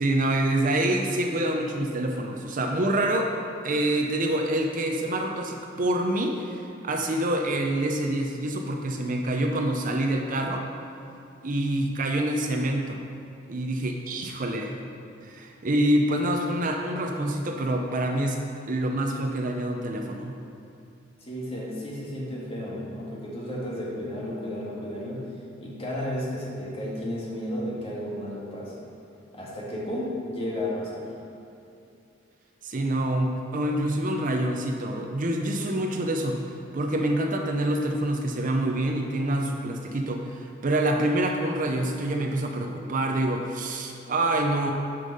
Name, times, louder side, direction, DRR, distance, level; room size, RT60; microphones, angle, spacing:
voice 1, 0.0-3.3 3.6-10.6 11.4-13.0 13.5-14.8 15.2-18.4 18.7-20.4 32.6-36.4 36.7-44.7, right 1 dB, 45° right, 2 dB, 0.6 m, -26 dB
voice 2, 21.2-25.3 25.6-28.9 29.3-31.0, left 1 dB, 30° left, -5 dB, 1.9 m, -33 dB
9.6 x 5.4 x 5.4 m, 2.7 s
head